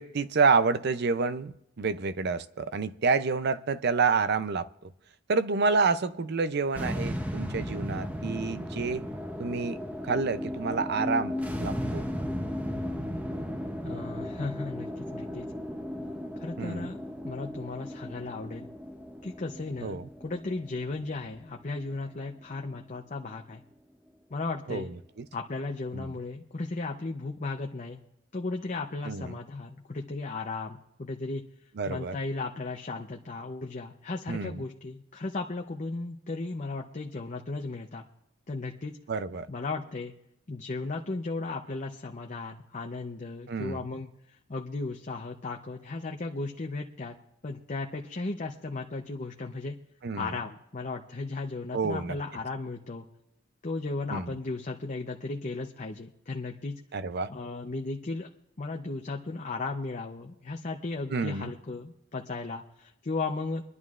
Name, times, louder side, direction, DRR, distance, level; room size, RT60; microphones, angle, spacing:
voice 1, 0.0-4.9 5.3-9.1 9.4-9.8 10.0-12.0 16.6-16.9 19.8-20.1 24.7-25.3 25.9-26.1 29.1-29.4 31.8-32.2 34.3-34.6 39.1-39.5 43.5-43.9 50.0-50.4 51.7-52.2 54.1-54.3 56.9-57.3 61.1-61.5, right 4 dB, 60° right, 0.5 m, -28 dB
sound 1, 6.8-23.2, equal, 10° right, 0.7 m, -36 dB
voice 2, 13.8-15.4 16.4-17.0 17.2-18.7 19.2-23.6 24.3-24.9 25.3-28.0 28.3-31.4 31.9-38.1 38.5-39.0 39.5-40.1 40.5-44.1 44.5-47.1 47.4-49.8 50.1-53.1 53.6-56.7 57.3-58.3 58.6-63.6, left 3 dB, 40° left, 0.7 m, -35 dB
25.5 x 11.0 x 2.5 m
head